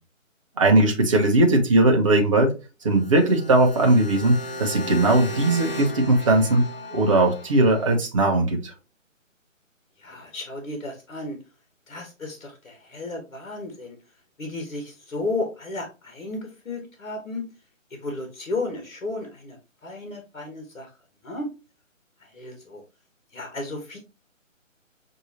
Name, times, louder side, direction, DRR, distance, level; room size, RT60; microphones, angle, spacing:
voice 1, 0.6-2.5 2.8-6.6 6.9-8.7, right 2 dB, 25° right, 1 dB, 0.7 m, -19 dB
sound 1, 2.9-7.9, left 1 dB, 45° left, 1.0 m, -36 dB
voice 2, 10.0-11.4 11.9-14.0 14.4-17.4 18.0-20.9 21.2-21.5 22.2-22.8 23.3-24.0, left 2 dB, 65° left, 3 dB, 1.5 m, -33 dB
5.9 x 2.7 x 2.8 m, 0.30 s
figure-of-eight pair, 155°, 40 cm